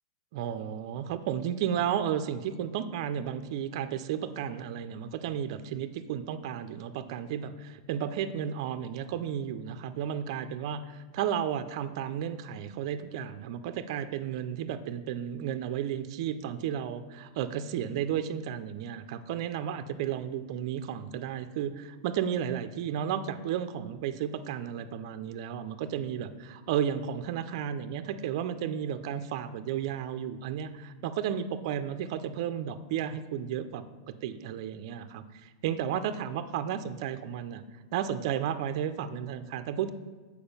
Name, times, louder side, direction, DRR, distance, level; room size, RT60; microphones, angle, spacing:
voice 1, 0.3-37.6 37.9-39.9, right 9 dB, 55° right, 10 dB, 0.5 m, -33 dB
6.9 x 4.7 x 5.4 m, 1.3 s
supercardioid pair, 145°, 3 cm